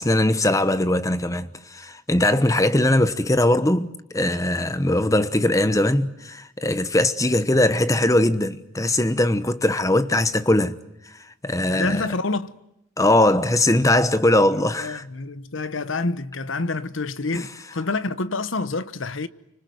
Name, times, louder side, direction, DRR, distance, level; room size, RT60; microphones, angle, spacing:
voice 1, 0.0-10.8 11.4-12.0 13.0-15.0 17.3-17.5, left 1 dB, 15° left, 1.0 m, -20 dB
voice 2, 11.7-12.6 14.5-19.3, left 3 dB, 80° left, 1.1 m, -28 dB
29.5 x 25.5 x 7.9 m
head